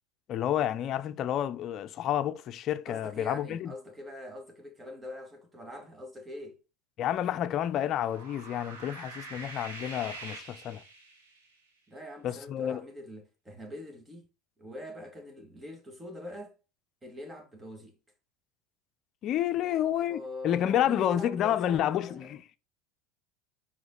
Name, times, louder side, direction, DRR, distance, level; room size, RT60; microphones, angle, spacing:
voice 1, 0.3-3.7 7.0-10.8 12.2-12.8 19.2-22.4, left 11 dB, 45° left, 0.6 m, -30 dB
voice 2, 2.9-6.6 11.9-14.3 14.6-16.5 17.0-17.9 19.5-22.3, left 1 dB, 15° right, 2.0 m, -43 dB
sound 1, 7.7-11.5, right 3 dB, 85° right, 2.4 m, -45 dB
5.7 x 4.9 x 4.0 m
hypercardioid pair, 100°, 0 cm